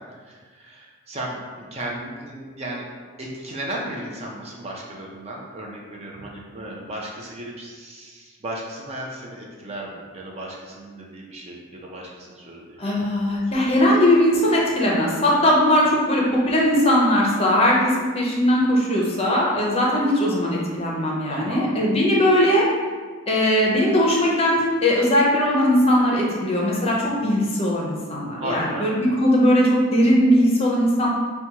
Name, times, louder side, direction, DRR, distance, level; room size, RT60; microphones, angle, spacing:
voice 1, 0.1-2.8 3.2-12.9 21.3-21.7 28.4-28.9, right 1 dB, 30° right, -2 dB, 0.5 m, -35 dB
voice 2, 12.8-22.6 23.3-31.1, equal, 30° left, -3 dB, 0.6 m, -19 dB
5.8 x 2.2 x 2.8 m, 1.5 s
head